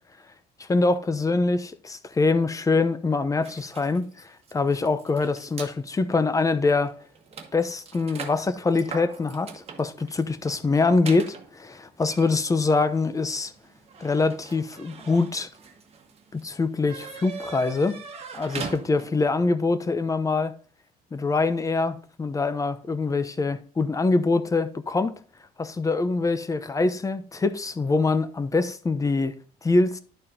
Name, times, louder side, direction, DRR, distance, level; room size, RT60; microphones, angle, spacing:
voice 1, 0.7-4.1 4.5-6.9 7.5-13.5 14.0-15.5 16.3-18.0 18.3-20.5 21.1-25.2 25.6-29.3 29.6-30.0, left 3 dB, 20° left, 0.7 m, -24 dB
sound 1, 3.4-5.7 6.5-6.6 6.9-19.3, right 5 dB, 40° right, 1.3 m, -42 dB
11.0 x 4.2 x 3.7 m
cardioid pair, 110°, 17 cm